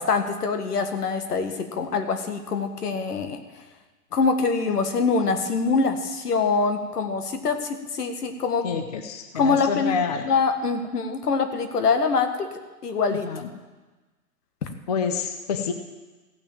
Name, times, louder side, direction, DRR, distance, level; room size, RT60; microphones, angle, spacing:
voice 1, 0.0-3.4 4.1-8.7 9.4-9.9 10.2-12.5 12.8-13.3, left 4 dB, 80° left, 7 dB, 1.8 m, -24 dB
voice 2, 8.6-10.3 13.2-13.5 14.9-15.7, left 6 dB, 25° left, 6 dB, 0.6 m, -28 dB
15.5 x 6.3 x 7.3 m, 1.2 s
hypercardioid pair, 160°, 46 cm